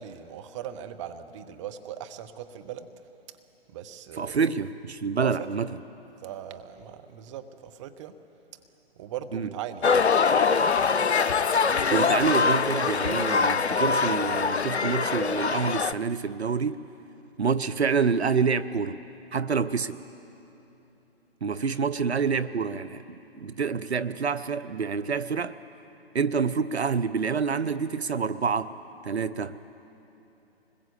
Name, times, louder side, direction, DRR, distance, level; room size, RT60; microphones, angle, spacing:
voice 1, 0.0-2.9 3.7-4.4 5.2-5.5 6.2-8.1 9.0-9.9 21.7-21.9, right 10 dB, 30° right, 1.0 m, -39 dB
voice 2, 4.1-5.7 9.3-9.5 11.9-16.8 17.4-19.0 19.3-20.0 21.4-25.6 26.1-28.7 29.0-29.6, right 5 dB, 80° right, 0.8 m, -27 dB
sound 1, 9.8-15.9, left 5 dB, 85° left, 0.7 m, -23 dB
24.5 x 21.0 x 8.3 m
figure-of-eight pair, 135°, 32 cm